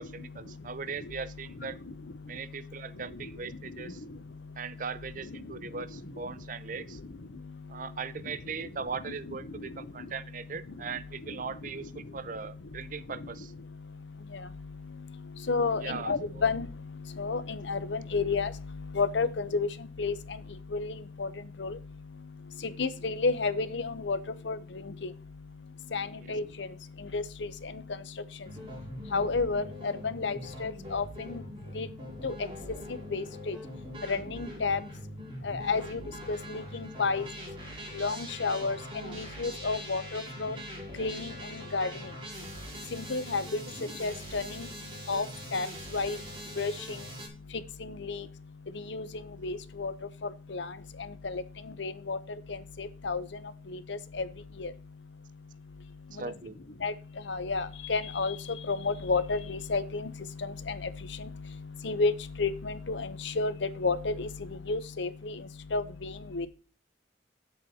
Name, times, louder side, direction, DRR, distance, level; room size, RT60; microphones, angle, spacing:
voice 1, 0.0-1.8 2.3-4.0 4.6-7.0 7.7-13.5 15.8-16.5 26.2-26.4 43.6-43.7 56.1-56.6, right 5 dB, 40° right, 15 dB, 0.5 m, -39 dB
voice 2, 15.5-16.7 17.2-17.4 17.7-18.5 19.0-19.7 20.0-20.1 20.7-20.9 21.2-21.3 21.6-21.8 22.8-24.2 24.5-24.6 25.9-26.7 27.1-27.2 29.1-31.0 31.3-31.4 31.8-31.9 32.2-32.3 33.1-33.5 34.1-34.8 35.4-36.0 36.3-37.3 38.0-38.8 39.1-40.6 41.0-41.3 41.7-41.9 42.9-43.4 44.0-44.4 45.1-45.2 45.5-45.7 45.9-46.2 46.6-46.7 48.1-48.2 48.9-49.0 49.4-49.9 50.5-50.6 51.2-51.4 51.8-52.2 52.8-53.2 53.7-54.3 54.6-54.7 56.8-56.9 57.3-58.3 58.7-60.1 60.7-60.8 61.8-62.1 62.4-63.1 63.4-63.5 63.8-64.3 64.7-65.3 65.7-66.5, left 4 dB, 65° left, 13 dB, 0.8 m, -30 dB
sound 1, 28.4-47.3, equal, 25° right, 4.8 m, -43 dB
9.3 x 7.9 x 4.2 m, 0.36 s
head